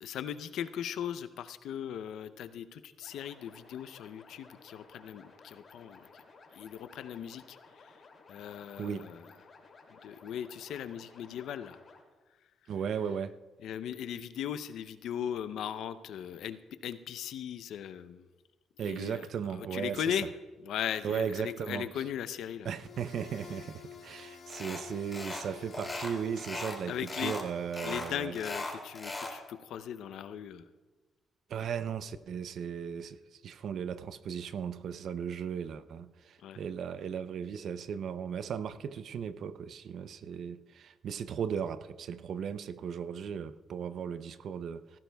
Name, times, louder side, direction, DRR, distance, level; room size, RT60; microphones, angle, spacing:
voice 1, 0.0-6.2 6.6-7.6 8.3-9.2 10.0-11.8 13.6-18.2 18.8-20.3 20.6-22.7 26.9-27.3 27.8-30.7 36.4-36.6, left 9 dB, 80° left, 0.6 m, -38 dB
sound 1, 3.0-12.0, left 4 dB, 45° left, 2.5 m, -56 dB
voice 2, 12.7-13.4 18.8-20.2 21.0-21.9 22.6-28.4 31.5-45.0, right 7 dB, 65° right, 0.5 m, -36 dB
sound 2, 22.6-28.4, left 7 dB, 60° left, 1.9 m, -51 dB
sound 3, 24.5-24.8 25.1-25.5 25.7-26.8 27.1-27.4 27.7-29.4, left 2 dB, 20° left, 2.6 m, -38 dB
17.0 x 14.5 x 2.3 m
cardioid pair, 90°, 0 cm